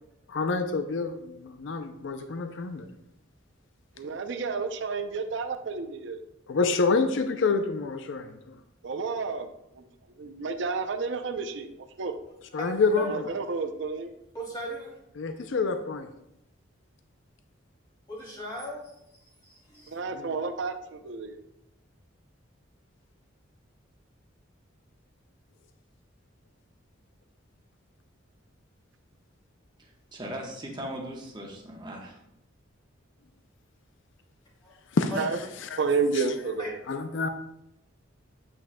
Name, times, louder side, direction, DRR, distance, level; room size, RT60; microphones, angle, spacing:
voice 1, 0.3-2.9 6.5-8.6 12.5-13.2 15.2-16.1 20.1-20.3 34.9-35.1 35.6-35.8 36.1-36.2 36.9-37.3, left 4 dB, 65° left, 8 dB, 0.4 m, -27 dB
voice 2, 4.0-6.2 8.8-9.5 9.7-9.8 10.2-11.7 12.0-12.1 13.0-14.1 19.9-21.4 35.2-35.4 35.8-36.8, right 4 dB, 60° right, 8 dB, 0.6 m, -30 dB
voice 3, 14.3-14.9 18.1-18.8 19.4-20.0 34.6-34.7 35.1-35.2 36.6-36.7, right 1 dB, 20° left, -5 dB, 2.6 m, -37 dB
voice 4, 29.8-32.2, equal, 20° right, 0 dB, 1.1 m, -39 dB
8.2 x 6.1 x 2.2 m, 0.82 s
head